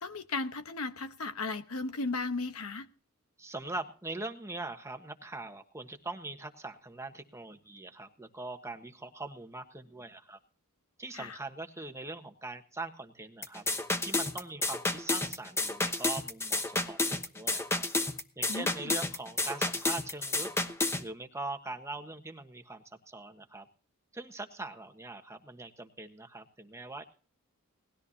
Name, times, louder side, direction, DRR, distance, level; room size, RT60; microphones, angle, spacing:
voice 1, 0.0-2.9 11.1-11.4 18.5-18.9, left 3 dB, 75° left, 1.1 m, -36 dB
voice 2, 3.4-10.4 11.0-13.7 14.0-17.9 18.3-20.5 21.0-23.7 24.1-27.0, right 2 dB, 15° right, 1.4 m, -42 dB
sound 1, 13.4-21.0, left 2 dB, 10° left, 1.0 m, -31 dB
19.0 x 13.5 x 2.8 m
head